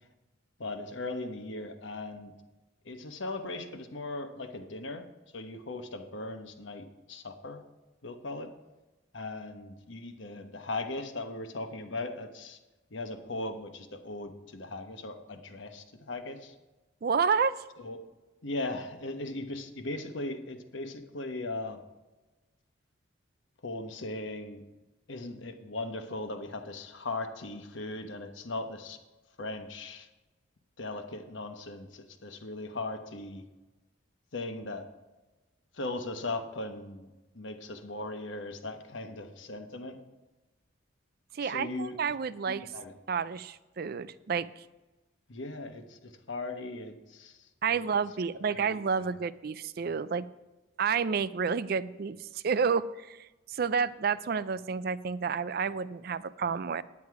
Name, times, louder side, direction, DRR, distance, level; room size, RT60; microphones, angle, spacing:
voice 1, 0.6-2.3 2.8-5.0 5.3-7.6 8.0-8.5 9.1-12.6 12.9-16.5 17.8-18.0 18.4-21.8 23.6-24.6 25.1-29.0 29.4-30.1 30.8-33.4 34.3-34.9 35.7-40.0 41.4-42.0 42.5-42.9 45.3-47.9 48.4-49.1, left 2 dB, 65° left, 6 dB, 1.1 m, -38 dB
voice 2, 17.0-17.5 41.3-42.7 43.1-44.6 47.6-50.3 50.8-56.8, right 6 dB, 50° right, 16 dB, 0.4 m, -30 dB
9.7 x 9.5 x 4.8 m, 1.1 s
head